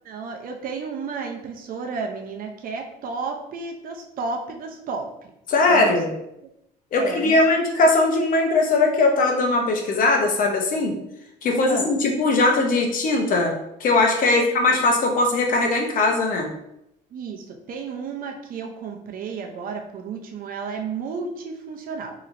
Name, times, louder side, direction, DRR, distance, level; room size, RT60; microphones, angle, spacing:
voice 1, 0.0-5.1 5.7-6.0 6.4-6.5 6.9-7.4 11.4-11.9 14.4-14.8 17.1-22.1, right 5 dB, 55° right, 3 dB, 0.6 m, -32 dB
voice 2, 5.5-6.2 6.9-10.9 11.4-16.5, left 2 dB, 55° left, 2 dB, 0.8 m, -20 dB
4.2 x 3.0 x 2.5 m, 0.81 s
cardioid pair, 110°, 17 cm